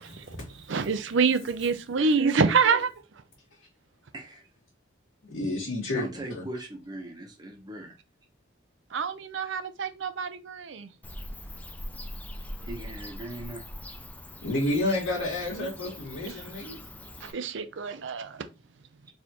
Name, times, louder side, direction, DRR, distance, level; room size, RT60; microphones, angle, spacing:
voice 1, 0.1-0.5 5.2-6.1 6.3-6.4 14.4-16.8, left 1 dB, 85° left, 1.8 m, -30 dB
voice 2, 0.7-2.9 8.9-10.9 15.5-15.7 16.3-16.4 17.2-18.4, right 5 dB, 65° right, 0.5 m, -26 dB
voice 3, 5.9-7.9 12.6-13.6, right 1 dB, 20° right, 1.0 m, -39 dB
Bird / Cricket, 11.0-17.3, left 1 dB, 10° left, 0.4 m, -42 dB
4.3 x 3.4 x 2.9 m
head